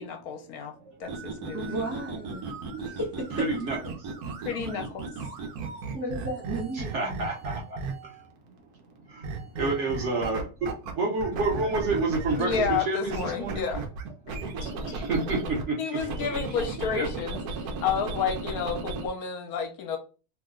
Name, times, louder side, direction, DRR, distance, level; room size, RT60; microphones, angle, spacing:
voice 1, 0.0-0.7 1.0-1.7 4.4-5.0 12.4-13.8 14.3-14.4 14.6-14.7 15.8-20.0, left 6 dB, 75° left, 5 dB, 1.1 m, -31 dB
sound 1, 1.0-8.2 9.2-10.9 11.2-15.6 16.0-19.1, right 3 dB, 75° right, 1.1 m, -35 dB
voice 2, 1.5-2.4 2.8-3.5 5.8-7.2, right 2 dB, 15° right, -3 dB, 0.4 m, -34 dB
voice 3, 3.4-4.1 4.4-4.5 6.7-8.2 9.1-13.6 14.8-16.0 16.4-16.6 16.9-17.1, right 3 dB, 55° right, -2 dB, 1.0 m, -30 dB
2.9 x 2.1 x 3.5 m, 0.34 s
omnidirectional pair, 1.7 m